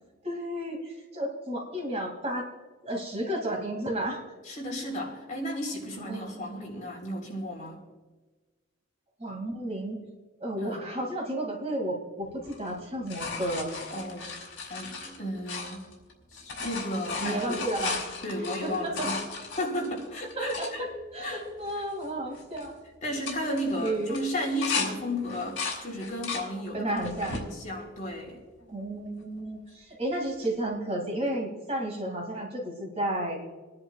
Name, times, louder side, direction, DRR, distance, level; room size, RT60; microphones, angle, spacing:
voice 1, 0.2-2.5 2.8-4.2 6.1-6.6 9.2-10.0 10.4-13.7 17.2-18.0 18.6-19.1 20.4-20.7 21.1-22.7 23.5-24.2 26.7-27.4 28.7-33.4, right 1 dB, 30° right, 0 dB, 2.4 m, -32 dB
voice 2, 4.4-7.8 10.6-10.8 13.9-14.3 14.7-15.9 16.3-17.6 18.2-19.2 19.6-20.9 21.2-21.5 23.0-27.0 27.3-28.4, equal, 40° left, -1 dB, 3.7 m, -34 dB
sound 1, 12.4-16.1 16.4-20.7 21.3-21.4 21.6-22.0 22.3-22.7 23.1-24.9 25.3-26.5 27.0-27.5 28.1-28.8 30.4-30.5, left 4 dB, 65° left, 3.4 m, -36 dB
27.5 x 11.0 x 2.4 m, 1.3 s
head